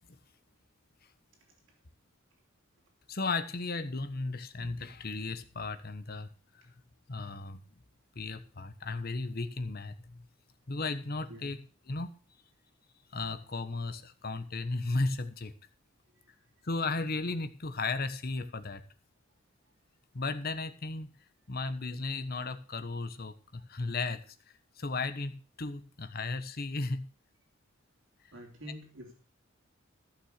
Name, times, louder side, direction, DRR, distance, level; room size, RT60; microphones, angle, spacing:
voice 1, 3.1-6.3 6.5-6.7 7.1-7.6 8.1-10.2 10.7-11.6 11.9-12.1 13.1-15.5 16.6-18.8 20.1-21.1 21.5-24.4 24.8-27.0, left 3 dB, 50° left, 10 dB, 1.1 m, -35 dB
voice 2, 28.3-29.1, equal, 65° right, 1 dB, 3.3 m, -46 dB
14.5 x 6.5 x 6.6 m, 0.38 s
head